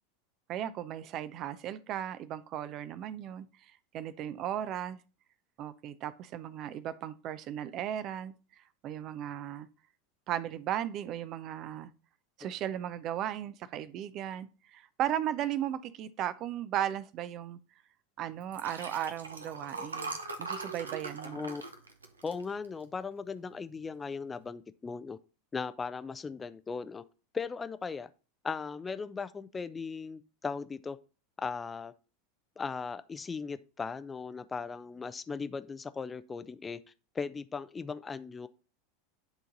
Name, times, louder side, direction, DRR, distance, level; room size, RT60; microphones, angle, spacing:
voice 1, 0.5-3.5 3.9-5.0 5.6-8.3 8.8-9.7 10.3-11.9 12.4-17.6 18.2-21.5, right 11 dB, 40° right, 0.6 m, -36 dB
Liquid, 18.4-23.0 23.5-23.8 24.1-24.2, right 3 dB, 80° right, 0.9 m, -41 dB
voice 2, 21.2-21.6 22.2-25.2 25.5-27.0 27.3-28.1 28.4-31.0 31.4-31.9 32.6-36.8 37.1-38.5, left 5 dB, 20° left, 0.5 m, -38 dB
10.5 x 3.8 x 4.0 m
figure-of-eight pair, 80°, 0 cm